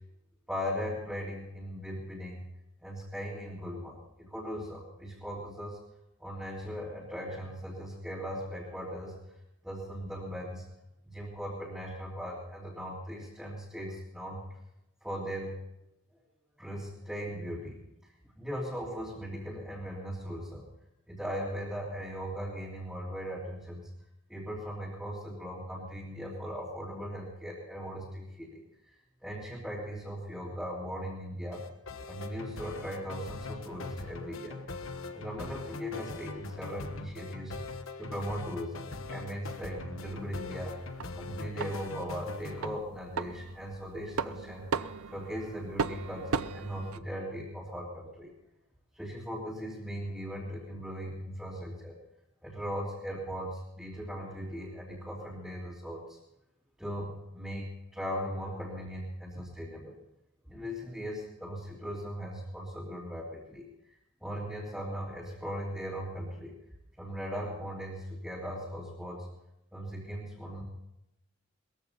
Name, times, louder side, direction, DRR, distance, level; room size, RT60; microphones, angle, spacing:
voice 1, 0.5-2.4 2.8-5.8 6.2-9.3 9.6-10.6 11.0-14.4 15.0-15.5 16.6-17.8 18.4-20.7 21.1-23.9 24.3-28.9 29.2-31.6 32.1-34.6 35.1-37.5 38.0-40.8 41.1-44.7 45.1-48.3 48.9-51.9 52.4-56.2 56.8-60.0 60.5-66.5 67.0-69.3 69.7-70.6, equal, 5° right, -9 dB, 3.1 m, -38 dB
sound 1, 31.5-42.8, left 3 dB, 75° left, 1.3 m, -42 dB
sound 2, 40.0-47.0, right 5 dB, 85° right, 0.6 m, -38 dB
21.0 x 15.0 x 4.1 m, 0.84 s
head